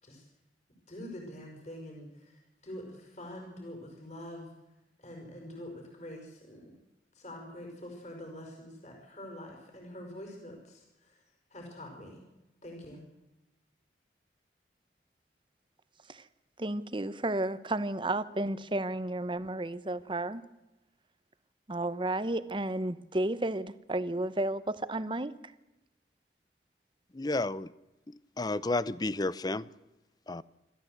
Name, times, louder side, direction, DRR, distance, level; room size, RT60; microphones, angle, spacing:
voice 1, 0.9-4.5 5.0-6.8 7.1-12.2 12.6-13.0, left 1 dB, 40° left, 5.5 m, -45 dB
voice 2, 16.6-20.4 21.7-25.3, right 1 dB, 30° right, 1.0 m, -32 dB
voice 3, 27.1-27.7 28.4-29.6 30.3-30.4, left 2 dB, 25° left, 0.6 m, -31 dB
27.0 x 13.5 x 8.0 m
head